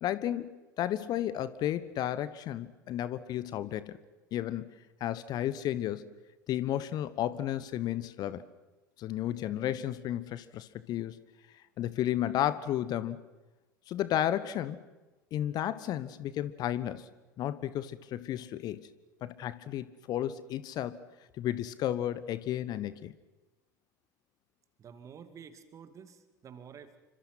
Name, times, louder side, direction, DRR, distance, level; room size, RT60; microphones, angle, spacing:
voice 1, 0.0-4.0 4.3-4.7 5.0-6.1 6.5-8.4 9.0-11.2 11.8-13.2 13.9-14.8 15.3-17.1 17.4-18.9 19.2-21.0 21.4-23.1, left 12 dB, 40° left, 15 dB, 1.2 m, -33 dB
voice 2, 24.8-27.0, right 7 dB, 30° right, 10 dB, 2.4 m, -50 dB
28.5 x 25.5 x 6.0 m, 1.1 s
figure-of-eight pair, 70°, 10 cm